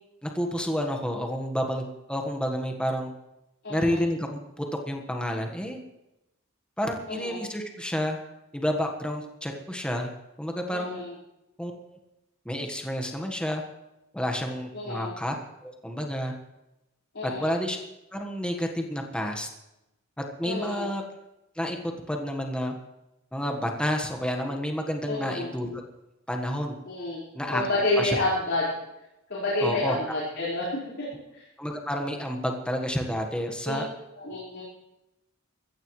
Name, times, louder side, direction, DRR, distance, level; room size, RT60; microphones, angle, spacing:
voice 1, 0.2-3.1 3.7-5.8 6.8-8.2 8.5-10.1 10.4-11.0 11.6-11.7 12.4-13.6 14.1-15.3 15.6-16.3 17.2-17.8 18.1-19.5 20.2-21.0 21.5-21.8 22.1-22.7 23.3-25.7 26.3-26.8 27.3-27.6 28.0-28.2 29.6-30.0 31.6-33.9, equal, 5° left, 3 dB, 1.4 m, -30 dB
voice 2, 3.6-4.0 7.1-7.4 10.7-11.1 14.7-15.1 17.1-17.5 20.4-20.9 25.1-25.5 26.8-27.2 27.5-28.8 29.3-31.1 31.3-31.4 33.6-33.8 34.2-34.6, left 2 dB, 60° left, -8 dB, 5.0 m, -29 dB
21.5 x 15.5 x 3.2 m, 0.94 s
head